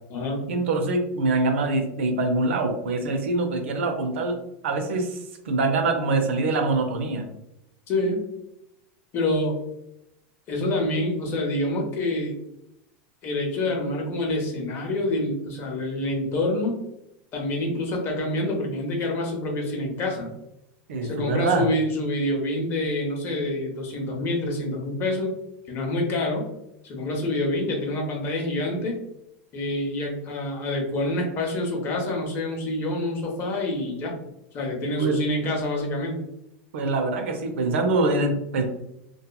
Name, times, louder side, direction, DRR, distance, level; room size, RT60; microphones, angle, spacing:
voice 1, 0.5-4.4 4.6-7.3 20.9-21.7 35.0-35.2 36.7-38.6, right 3 dB, 85° right, 5 dB, 0.5 m, -24 dB
voice 2, 7.9-8.2 9.1-9.5 10.5-12.3 13.2-16.8 17.3-20.4 21.0-25.3 25.7-26.4 26.8-29.0 29.5-34.1 34.5-36.2, left 1 dB, 40° left, 0 dB, 0.8 m, -27 dB
2.8 x 2.4 x 2.3 m, 0.83 s
supercardioid pair, 130°, 6 cm